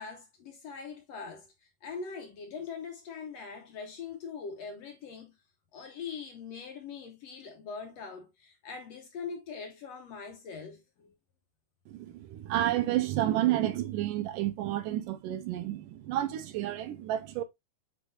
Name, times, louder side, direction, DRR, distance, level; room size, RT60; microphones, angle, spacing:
voice 1, 0.0-5.4 5.7-11.1, left 5 dB, 70° left, 1.7 m, -42 dB
voice 2, 11.9-17.4, right 13 dB, 80° right, 2.4 m, -30 dB
8.2 x 4.7 x 2.6 m
omnidirectional pair, 3.8 m